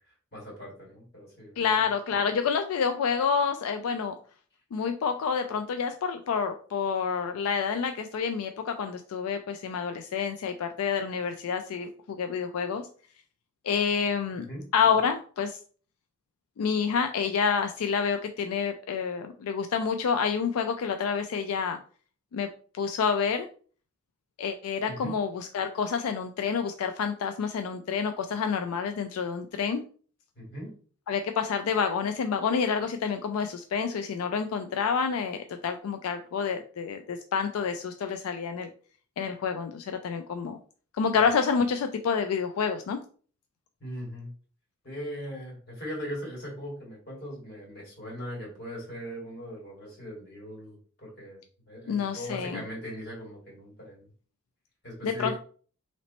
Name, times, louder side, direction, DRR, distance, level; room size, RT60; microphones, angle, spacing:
voice 1, 0.3-1.7 14.5-14.6 24.9-25.1 30.4-30.7 43.8-44.3 44.8-51.4 51.7-54.0 54.8-55.4, equal, 50° left, -4 dB, 2.0 m, -39 dB
voice 2, 1.6-4.2 4.7-12.9 13.6-14.5 14.7-15.6 16.6-21.8 22.3-23.5 24.4-29.8 31.1-38.7 39.2-40.6 40.9-43.0 51.9-52.6 55.0-55.4, left 6 dB, 85° left, 7 dB, 0.4 m, -28 dB
3.1 x 2.9 x 4.0 m, 0.43 s
head